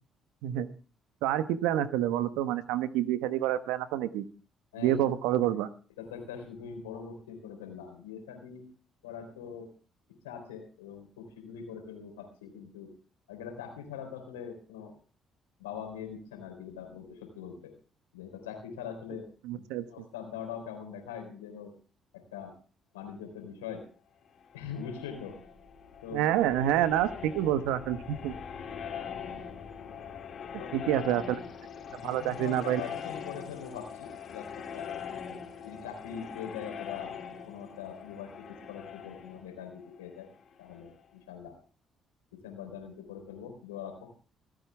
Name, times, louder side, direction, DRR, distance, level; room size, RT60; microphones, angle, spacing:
voice 1, 1.2-4.2 4.8-5.7 19.4-19.9 26.1-28.3 30.7-31.2 32.0-32.8, right 12 dB, 80° right, 12 dB, 1.1 m, -28 dB
voice 2, 6.0-8.7 9.0-9.7 10.1-12.9 13.3-15.0 15.6-17.7 18.1-19.6 19.9-21.7 22.1-22.5 22.9-23.9 24.5-25.4 26.0-26.3 30.6-31.0 31.9-34.9 35.6-37.2 37.5-40.3 40.6-41.6 42.3-44.2, left 7 dB, 90° left, 5 dB, 3.9 m, -42 dB
sound 1, 24.4-41.0, left 7 dB, 55° left, 3.0 m, -42 dB
25.0 x 9.0 x 3.4 m, 0.37 s
hypercardioid pair, 50°, 0 cm